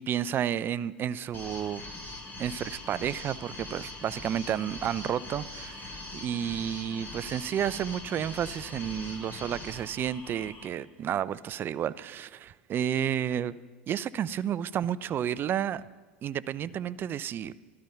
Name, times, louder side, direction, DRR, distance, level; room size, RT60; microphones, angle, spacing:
voice 1, 0.0-1.8 2.4-13.6 13.9-15.8 16.2-17.5, right 9 dB, 35° right, 18 dB, 0.5 m, -31 dB
sound 1, 1.3-10.7, left 2 dB, 30° left, 3.0 m, -42 dB
13.0 x 12.5 x 5.6 m, 1.3 s
hypercardioid pair, 85°, 6 cm